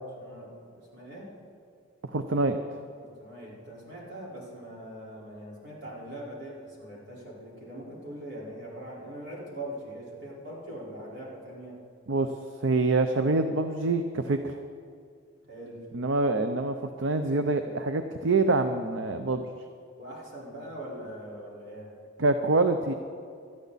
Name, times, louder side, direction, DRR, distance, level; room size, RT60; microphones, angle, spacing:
voice 1, 0.2-1.3 3.0-11.8 15.4-15.9 20.0-21.9, right 1 dB, 60° right, -5 dB, 4.4 m, -42 dB
voice 2, 2.1-2.6 12.1-14.6 15.9-19.4 22.2-22.9, right 3 dB, 75° right, 8 dB, 0.6 m, -26 dB
19.0 x 13.0 x 4.1 m, 2.3 s
head